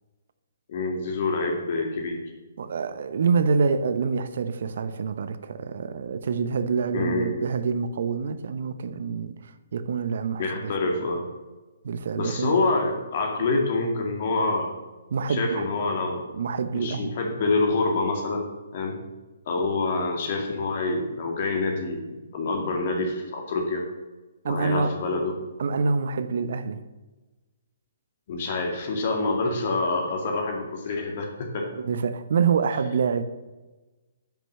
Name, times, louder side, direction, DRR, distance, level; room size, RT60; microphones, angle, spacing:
voice 1, 0.7-2.2 6.9-7.4 10.4-11.2 12.2-14.7 15.3-16.3 16.7-18.5 18.7-19.0 19.5-22.0 22.3-23.9 24.5-25.4 28.3-31.7, left 3 dB, 50° left, 2.1 m, -26 dB
voice 2, 2.6-10.7 11.8-12.5 13.4-13.5 15.1-15.7 16.3-17.1 24.4-25.0 25.6-26.8 31.8-33.2, right 5 dB, 60° right, 0.8 m, -26 dB
10.5 x 6.1 x 6.4 m
figure-of-eight pair, 130°, 0 cm